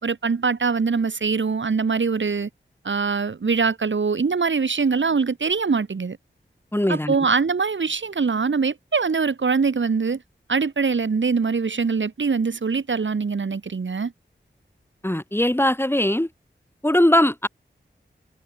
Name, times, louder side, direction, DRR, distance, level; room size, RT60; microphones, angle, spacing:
voice 1, 0.0-2.5 2.8-6.2 6.9-10.2 10.5-14.1, right 5 dB, 80° right, 5.6 m, -23 dB
voice 2, 6.7-7.3 15.0-16.3 16.8-17.5, left 1 dB, 10° left, 4.2 m, -20 dB
wide cardioid pair, 75°, 19 cm